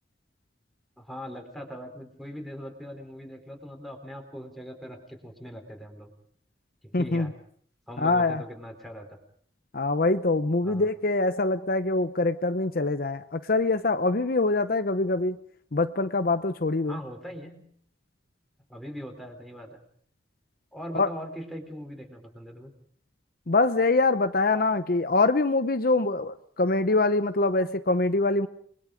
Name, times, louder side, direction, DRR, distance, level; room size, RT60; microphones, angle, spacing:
voice 1, 1.0-6.1 6.8-7.3 7.9-9.2 10.6-10.9 16.9-17.6 18.7-19.8 20.7-22.7, equal, ahead, 3 dB, 4.2 m, -40 dB
voice 2, 6.9-7.3 8.0-8.4 9.7-15.4 15.7-17.0 20.9-21.1 23.5-28.5, left 3 dB, 55° left, 10 dB, 0.8 m, -24 dB
29.0 x 21.5 x 5.1 m, 0.63 s
head